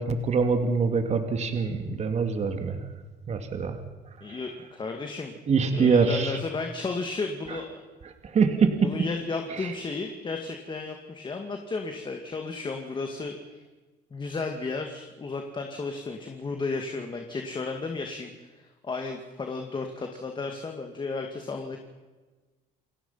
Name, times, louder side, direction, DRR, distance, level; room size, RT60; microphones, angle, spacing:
voice 1, 0.0-2.8 3.3-3.8 5.5-6.3 8.3-8.9 9.6-9.7, right 5 dB, 40° right, 6 dB, 2.5 m, -24 dB
voice 2, 4.2-5.3 5.6-7.8 8.8-13.4 14.1-21.8, left 3 dB, 30° left, 4 dB, 2.3 m, -33 dB
29.5 x 18.5 x 5.8 m, 1.3 s
cardioid pair, 110°, 17 cm